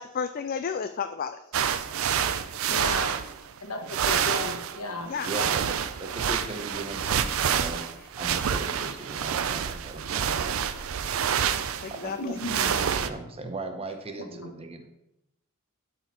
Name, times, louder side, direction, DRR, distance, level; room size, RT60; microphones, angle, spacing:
voice 1, 0.0-1.5 5.1-5.3 11.8-12.4, left 6 dB, 40° left, 9 dB, 0.3 m, -32 dB
sound 1, 1.5-3.6 3.9-13.1, right 8 dB, 65° right, 0.4 m, -28 dB
voice 2, 2.2-3.2 3.6-5.1 12.2-12.7 14.3-14.5, left 1 dB, 80° left, 3 dB, 1.5 m, -35 dB
voice 3, 5.3-5.6 6.0-7.8 8.2-10.6 12.0-12.1 13.0-14.9, right 2 dB, 25° right, 6 dB, 0.8 m, -38 dB
12.5 x 4.2 x 4.3 m, 0.85 s
head